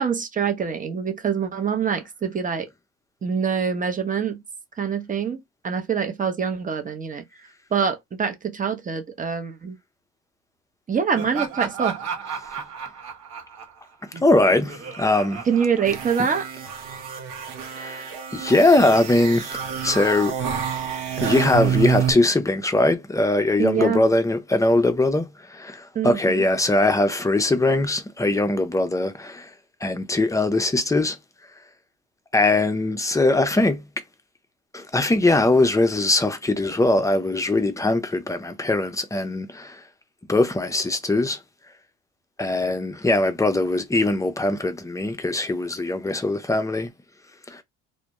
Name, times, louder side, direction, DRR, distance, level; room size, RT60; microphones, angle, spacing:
voice 1, 0.0-2.7 3.2-4.4 4.8-7.2 7.7-9.8 10.9-12.0 15.5-16.5 23.6-24.0 25.9-26.4, right 6 dB, 25° right, 0.7 m, -25 dB
Laughter, 11.1-16.6, right 7 dB, 55° right, 1.0 m, -34 dB
voice 2, 14.2-15.4 17.7-20.4 21.2-29.5 29.8-31.2 32.3-33.8 34.7-39.8 40.3-41.4 42.4-46.9 47.5-47.6, left 2 dB, 10° left, 0.5 m, -21 dB
sound 1, 15.9-22.1, right 8 dB, 85° right, 0.8 m, -28 dB
2.1 x 2.1 x 2.9 m
supercardioid pair, 80°, 31 cm